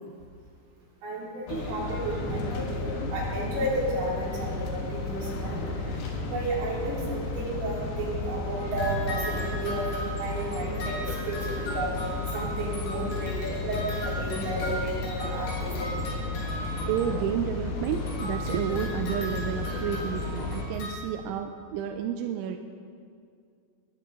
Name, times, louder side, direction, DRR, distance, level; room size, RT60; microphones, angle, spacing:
voice 1, 1.0-15.9, right 1 dB, 65° right, -6 dB, 6.1 m, -32 dB
sound 1, 1.5-20.7, left 3 dB, 60° left, 2.9 m, -33 dB
sound 2, 8.6-17.4 17.8-20.9, equal, 80° left, 6.7 m, -39 dB
voice 2, 16.9-22.6, right 8 dB, 85° right, 5 dB, 2.9 m, -31 dB
21.0 x 12.5 x 3.8 m, 2.3 s
omnidirectional pair, 5.8 m